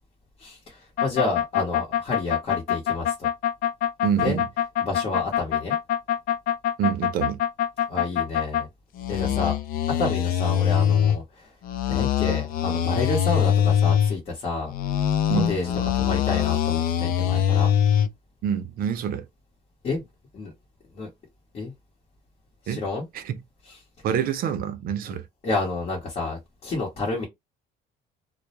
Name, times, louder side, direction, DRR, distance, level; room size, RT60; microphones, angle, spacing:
voice 1, 0.4-3.3 4.2-4.4 4.8-5.7 7.9-8.7 9.1-9.6 10.0-11.5 11.9-14.7 15.5-17.7 19.8-20.0 20.3-20.5 20.9-21.1 21.5-21.7 22.6-23.0 23.7-23.8 25.4-27.3, left 3 dB, 40° left, 0.9 m, -29 dB
sound 1, 1.0-8.6 9.0-11.2 11.6-14.2 14.7-18.1, left 10 dB, 55° left, 0.4 m, -23 dB
voice 2, 4.0-4.5 6.8-7.4 9.3-9.4 15.3-15.5 18.4-19.2 22.7-22.8 23.1-23.4 24.0-25.2, right 8 dB, 60° right, 0.5 m, -26 dB
2.2 x 2.0 x 2.8 m
cardioid pair, 120°, 17 cm